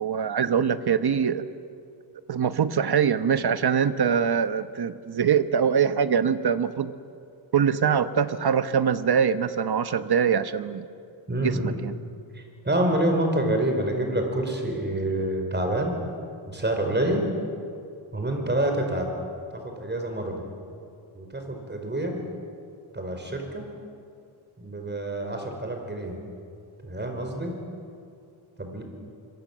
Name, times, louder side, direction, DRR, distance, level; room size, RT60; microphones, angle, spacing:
voice 1, 0.0-1.4 2.3-6.9 7.5-10.9 11.4-11.9, right 7 dB, 50° right, 11 dB, 1.1 m, -23 dB
voice 2, 11.3-11.7 12.3-16.0 16.5-17.3 18.1-19.1 19.6-20.5 21.1-22.2 22.9-23.6 24.6-26.2 26.8-27.6 28.6-28.8, right 1 dB, 20° right, 3 dB, 5.0 m, -27 dB
25.5 x 23.0 x 7.5 m, 2.4 s
wide cardioid pair, 105°, 49 cm